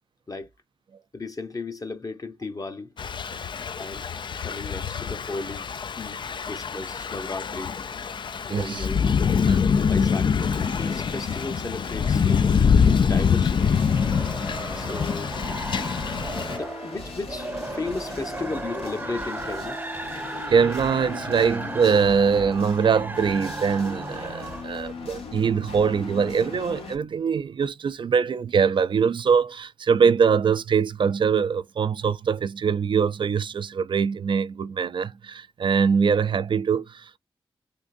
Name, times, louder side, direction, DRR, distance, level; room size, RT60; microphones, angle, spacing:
voice 1, 1.1-3.0 3.8-4.1 4.4-5.6 6.0-7.7 8.5-9.1 9.8-13.8 14.7-15.7 16.5-19.8, left 3 dB, 35° left, 0.9 m, -35 dB
Thunder / Rain, 3.0-16.6, left 6 dB, 55° left, 0.4 m, -24 dB
voice 2, 8.5-8.9 9.4-9.6 20.5-37.2, right 6 dB, 60° right, 0.4 m, -23 dB
sound 1, 10.4-27.0, left 3 dB, 80° left, 1.1 m, -38 dB
female laughter, 13.6-24.6, right 2 dB, 20° right, 0.7 m, -36 dB
3.6 x 2.5 x 2.5 m
cardioid pair, 45°, 10 cm